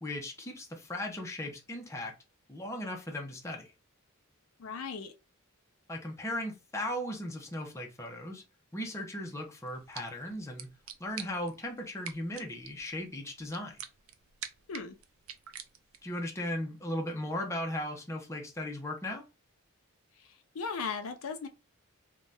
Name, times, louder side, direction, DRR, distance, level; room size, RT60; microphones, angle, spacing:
voice 1, 0.0-2.1 2.5-3.7 5.9-8.4 8.7-10.7 11.0-13.8 16.0-19.2, left 1 dB, 15° left, 0.5 m, -37 dB
voice 2, 4.6-5.1 14.7-14.9 20.5-21.5, left 5 dB, 75° left, 0.5 m, -36 dB
sound 1, 9.7-16.2, right 9 dB, 65° right, 0.4 m, -48 dB
2.6 x 2.2 x 3.2 m
head